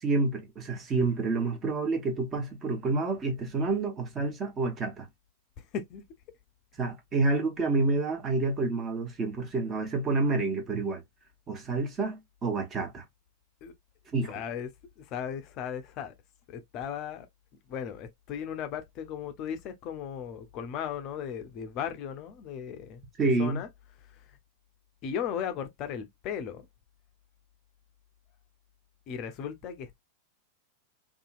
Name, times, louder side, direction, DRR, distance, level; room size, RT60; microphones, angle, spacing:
voice 1, 0.0-5.1 6.8-11.0 11.5-13.0 14.1-14.3 23.2-23.6, right 3 dB, 25° right, 0.9 m, -28 dB
voice 2, 14.3-14.7 15.0-16.1 16.5-17.3 17.7-23.0 23.4-23.7 24.1-24.4 25.0-26.7 29.1-30.0, left 8 dB, 40° left, 0.5 m, -36 dB
2.7 x 2.4 x 2.4 m
figure-of-eight pair, 90°, 0 cm